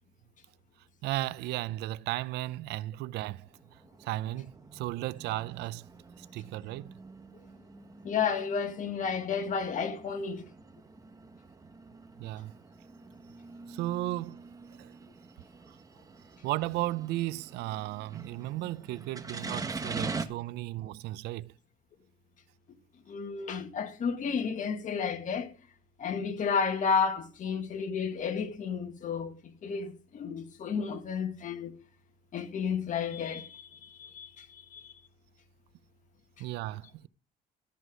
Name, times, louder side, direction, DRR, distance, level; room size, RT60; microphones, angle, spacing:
voice 1, 1.0-5.9 6.2-6.9 12.2-12.6 13.7-14.4 14.8-14.9 15.7-15.8 16.4-21.5 36.4-37.1, right 16 dB, 85° right, 0.5 m, -35 dB
sound 1, 3.4-20.3, right 3 dB, 20° right, 1.3 m, -44 dB
voice 2, 8.0-10.4 23.1-25.5 26.0-31.8 32.3-34.9, left 6 dB, 50° left, 1.9 m, -32 dB
13.5 x 8.0 x 5.1 m
cardioid pair, 110°, 17 cm